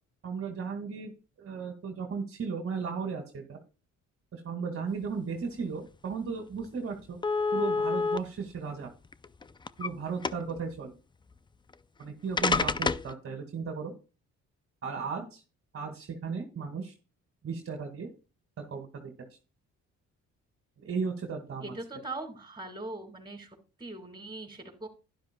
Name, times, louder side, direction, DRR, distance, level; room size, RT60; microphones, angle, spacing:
voice 1, 0.2-3.6 4.3-7.2 7.5-8.9 9.8-10.9 12.0-13.9 14.8-15.4 15.7-16.9 17.4-18.1 18.6-19.3 20.8-21.7, right 5 dB, 50° right, 3 dB, 2.1 m, -35 dB
sound 1, 6.1-6.2 6.5-6.7 7.2-8.2 9.1-9.9 10.2-10.6 11.7-11.8 12.4-13.1, left 4 dB, 15° left, 0.4 m, -28 dB
voice 2, 21.6-23.5 23.8-24.9, right 2 dB, 15° right, 3 dB, 4.0 m, -40 dB
12.0 x 10.5 x 2.2 m, 0.32 s
cardioid pair, 90°, 30 cm